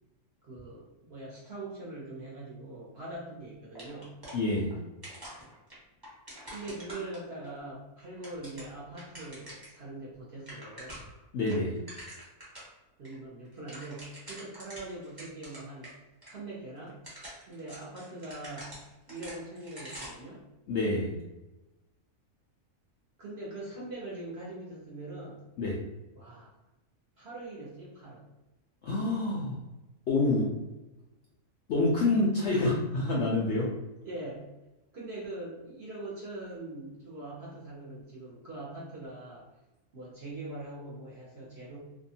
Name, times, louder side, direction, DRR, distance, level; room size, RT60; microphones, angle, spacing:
voice 1, 0.4-4.2 6.5-11.0 13.0-16.0 16.3-17.0 17.5-18.8 19.1-20.4 23.2-25.4 26.2-26.5 27.2-28.2 32.5-32.8 34.0-34.5 34.9-39.4 39.9-41.8, right 2 dB, 55° right, -5 dB, 0.8 m, -42 dB
sound 1, 3.8-4.8 5.0-7.5 8.0-9.8 10.1-10.2 10.4-11.2 11.5-12.7 13.0-13.1 13.4-15.9 16.2-16.3 16.9-20.3, right 1 dB, 20° right, 0.7 m, -46 dB
voice 2, 4.3-4.7 11.3-11.7 20.7-21.2 25.6-25.8 28.8-29.6 30.1-30.5 31.7-33.7, left 2 dB, 65° left, -4 dB, 0.7 m, -27 dB
2.7 x 2.2 x 2.7 m, 1.0 s
omnidirectional pair, 1.6 m